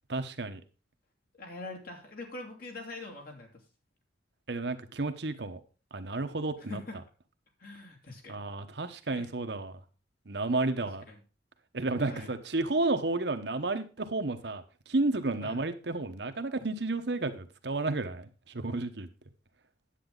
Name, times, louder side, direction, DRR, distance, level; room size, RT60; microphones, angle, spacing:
voice 1, 0.1-0.6 4.5-5.6 5.9-6.8 8.3-9.7 10.3-11.0 11.7-19.1, right 2 dB, 65° right, 8 dB, 1.1 m, -32 dB
voice 2, 1.4-3.5 6.6-7.0 7.6-8.4 9.1-9.3 10.8-11.2 12.1-12.3 15.4-15.6, left 2 dB, 55° left, 2 dB, 2.5 m, -44 dB
10.0 x 8.3 x 3.9 m, 0.34 s
head